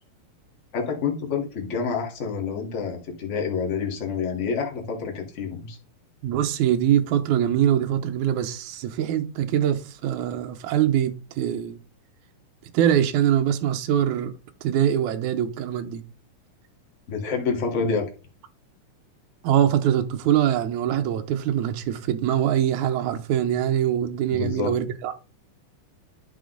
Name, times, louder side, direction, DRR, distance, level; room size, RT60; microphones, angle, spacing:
voice 1, 0.7-5.8 17.1-18.0 24.3-24.7, left 5 dB, 40° left, 1.1 m, -28 dB
voice 2, 6.2-11.8 12.7-14.3 14.6-16.0 19.4-25.1, right 10 dB, 75° right, 2.1 m, -23 dB
10.0 x 3.9 x 3.9 m
omnidirectional pair, 3.7 m